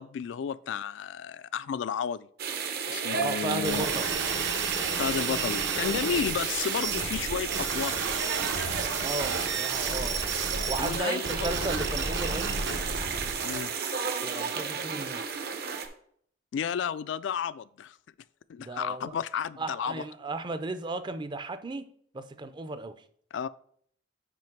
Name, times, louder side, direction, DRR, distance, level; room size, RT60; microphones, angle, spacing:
voice 1, 0.0-2.3 2.9-3.9 5.0-8.0 10.8-11.5 13.4-13.7 16.5-18.0 18.5-20.0 23.3-23.5, left 7 dB, 75° left, 0.3 m, -32 dB
sound 1, 2.4-15.9, right 6 dB, 60° right, 0.8 m, -33 dB
voice 2, 3.1-4.1 9.0-12.6 14.2-15.3 18.6-19.2 19.6-21.9 22.1-23.0, right 2 dB, 25° right, 0.4 m, -35 dB
sound 2, 3.6-11.0 11.2-13.6, right 5 dB, 75° right, 1.1 m, -32 dB
6.0 x 4.9 x 4.5 m
head